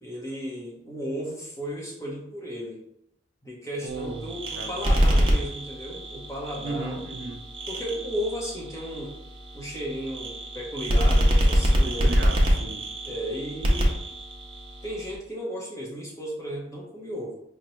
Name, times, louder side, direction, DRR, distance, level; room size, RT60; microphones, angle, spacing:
voice 1, 0.0-2.8 3.4-7.0 7.7-9.1 9.5-12.1 13.0-14.0 14.8-17.3, equal, 15° left, -3 dB, 0.8 m, -34 dB
voice 2, 3.8-5.0 6.6-7.4 11.8-12.9, right 3 dB, 70° right, 4 dB, 0.4 m, -35 dB
sound 1, 3.9-15.2, equal, 30° right, 0.7 m, -25 dB
5.2 x 2.2 x 3.0 m, 0.79 s
head